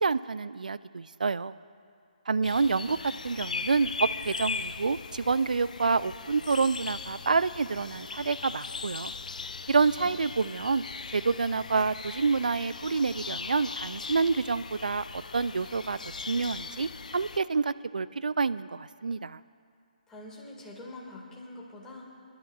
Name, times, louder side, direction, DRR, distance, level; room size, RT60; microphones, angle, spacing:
voice 1, 0.0-1.6 2.3-9.1 9.7-10.8 11.1-16.0 16.3-19.4, right 4 dB, 70° right, 16 dB, 0.3 m, -28 dB
sound 1, 2.4-17.4, left 4 dB, 60° left, 0.5 m, -39 dB
voice 2, 9.7-10.1 20.1-22.1, left 2 dB, 10° left, -4 dB, 2.0 m, -45 dB
28.5 x 11.5 x 2.4 m, 2.3 s
figure-of-eight pair, 145°, 4 cm